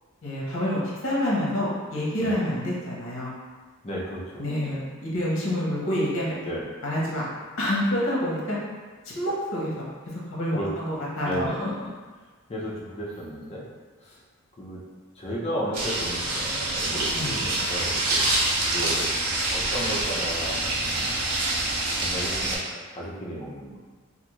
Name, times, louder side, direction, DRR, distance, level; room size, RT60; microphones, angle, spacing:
voice 1, 0.2-3.3 4.4-6.3 6.8-7.2 7.6-8.6 9.1-9.9 10.3-11.7 17.1-17.3, left 1 dB, 60° left, -5 dB, 0.8 m, -27 dB
voice 2, 3.8-4.8 6.4-6.6 10.5-10.9 11.2-11.6 12.5-13.7 14.0-14.2 14.6-14.8 15.2-18.4 18.7-19.1 19.5-21.2 21.9-23.8, equal, 25° left, -5 dB, 0.5 m, -34 dB
sound 1, 15.7-22.6, right 2 dB, 90° right, 0.6 m, -26 dB
2.5 x 2.4 x 3.0 m, 1.4 s
head